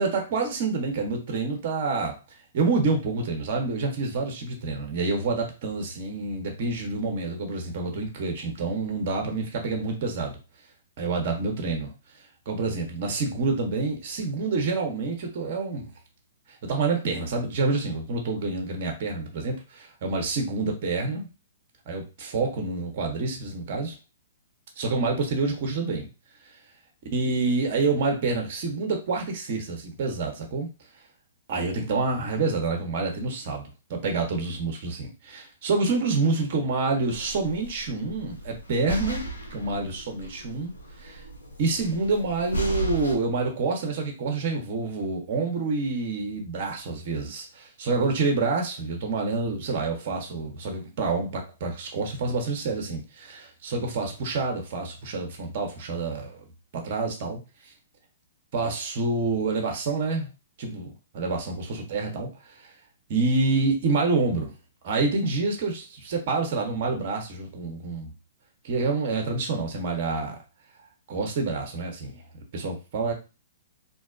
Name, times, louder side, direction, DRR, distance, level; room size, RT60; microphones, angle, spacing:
voice 1, 0.0-2.2 2.5-10.4 11.0-11.9 12.5-15.9 16.5-21.3 21.9-23.9 24.8-26.1 27.1-30.7 31.5-39.2 39.5-40.7 41.0-41.2 41.6-56.4 56.7-57.7 58.5-60.3 60.6-60.9 61.1-62.7 63.1-64.5 64.8-68.1 68.6-70.4 71.1-72.2 72.5-73.1, right 3 dB, 50° right, 3 dB, 0.7 m, -27 dB
sound 1, 37.1-43.1, right 1 dB, 85° left, 0.6 m, -35 dB
2.5 x 2.1 x 2.4 m, 0.30 s
figure-of-eight pair, 120°, 0 cm